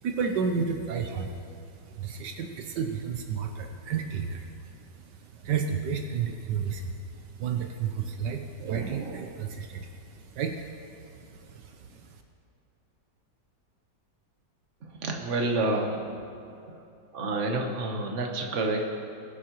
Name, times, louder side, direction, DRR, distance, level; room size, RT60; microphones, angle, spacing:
voice 1, 0.0-12.2, right 6 dB, 75° right, 5 dB, 1.4 m, -32 dB
voice 2, 14.8-16.1 16.5-16.7 17.1-18.9, right 2 dB, 45° right, 2 dB, 1.4 m, -29 dB
21.0 x 8.5 x 3.0 m, 2.7 s
omnidirectional pair, 1.9 m